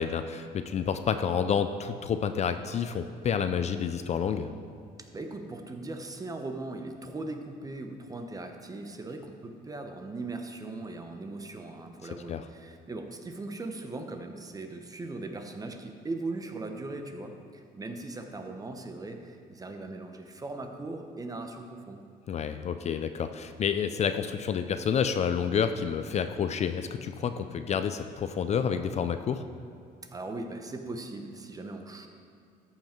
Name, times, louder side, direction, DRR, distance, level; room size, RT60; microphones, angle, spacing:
voice 1, 0.0-4.5 12.3-12.4 22.3-29.4, left 7 dB, 40° left, 9 dB, 0.4 m, -29 dB
voice 2, 5.0-22.0 30.1-32.1, right 2 dB, 20° right, 5 dB, 0.9 m, -39 dB
13.5 x 5.9 x 4.4 m, 2.4 s
cardioid pair, 110°, 17 cm